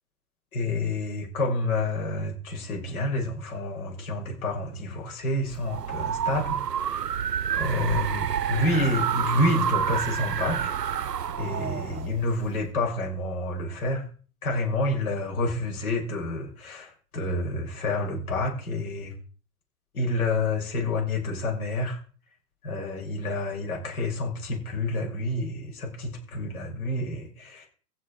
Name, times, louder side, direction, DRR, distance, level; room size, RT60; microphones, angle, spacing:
voice 1, 0.5-7.2 7.5-11.1 11.4-14.1 14.4-19.1 19.9-22.0 22.6-27.7, left 2 dB, 65° left, 0 dB, 5.6 m, -29 dB
sound 1, 5.5-12.6, right 8 dB, 85° right, 0.8 m, -29 dB
16.0 x 5.9 x 4.7 m, 0.40 s
hypercardioid pair, 115°, 47 cm